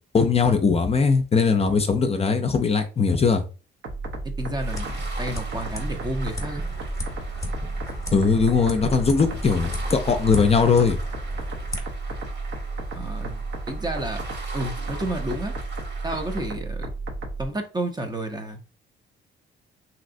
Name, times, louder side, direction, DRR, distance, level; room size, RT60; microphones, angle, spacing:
voice 1, 0.1-3.4 8.1-11.0, left 5 dB, 30° left, 0.5 m, -20 dB
sound 1, 3.8-17.5, right 3 dB, 80° right, 0.9 m, -33 dB
sound 2, 4.4-11.8, left 2 dB, 15° left, 0.9 m, -36 dB
voice 2, 4.4-6.7 12.9-14.2 14.5-15.5 16.0-16.9 17.4-18.6, right 1 dB, 20° right, 0.6 m, -31 dB
sound 3, 4.6-16.5, right 2 dB, 60° right, 1.3 m, -42 dB
3.2 x 2.8 x 2.6 m
cardioid pair, 90°, 20 cm